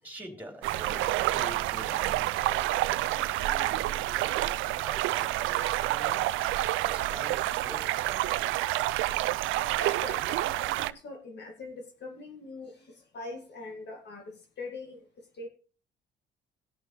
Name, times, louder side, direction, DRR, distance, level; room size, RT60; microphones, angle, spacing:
voice 1, 0.0-6.3 6.8-8.7, right 1 dB, 10° right, 3 dB, 3.3 m, -46 dB
sound 1, 0.6-10.9, right 16 dB, 90° right, 0.4 m, -28 dB
voice 2, 9.8-15.5, left 3 dB, 60° left, 3 dB, 2.1 m, -43 dB
18.5 x 6.2 x 3.3 m, 0.37 s
cardioid pair, 90°, 20 cm